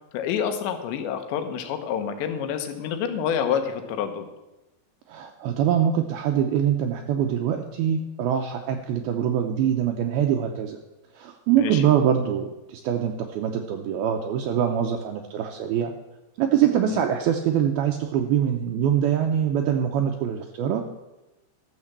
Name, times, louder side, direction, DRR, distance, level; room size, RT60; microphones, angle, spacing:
voice 1, 0.1-4.3 11.5-11.8 16.9-17.0, left 8 dB, 85° left, 7 dB, 3.3 m, -28 dB
voice 2, 5.1-10.8 11.2-15.9 16.4-20.8, right 9 dB, 80° right, 3 dB, 2.3 m, -24 dB
12.5 x 6.5 x 7.3 m, 1.0 s
omnidirectional pair, 5.0 m